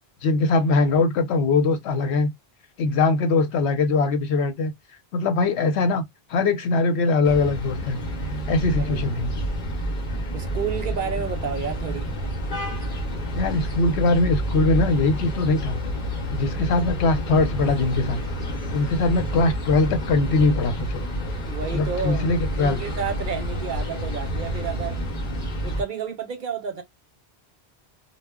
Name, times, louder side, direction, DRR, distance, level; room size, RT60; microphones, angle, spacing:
voice 1, 0.2-2.3 2.8-4.7 5.1-6.0 6.3-8.0 8.5-9.3 13.3-15.8 16.3-18.2 18.7-21.0 21.7-22.8, left 3 dB, 90° left, 0.9 m, -21 dB
sound 1, 7.2-25.8, equal, 55° left, 0.9 m, -29 dB
voice 2, 10.3-12.1 21.5-22.3 22.6-25.0 25.6-26.8, right 6 dB, 55° right, 0.7 m, -30 dB
2.1 x 2.0 x 3.4 m
omnidirectional pair, 1.1 m